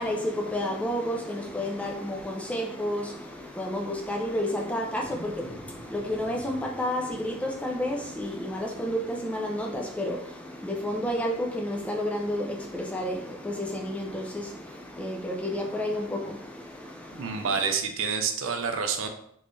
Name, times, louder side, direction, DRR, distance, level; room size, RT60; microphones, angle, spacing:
voice 1, 0.0-17.7, left 1 dB, 5° left, 0.3 m, -31 dB
Wild animals, 4.0-9.0, equal, 45° left, 1.3 m, -49 dB
voice 2, 17.1-19.1, right 5 dB, 70° right, 0.5 m, -28 dB
3.6 x 3.0 x 2.6 m
head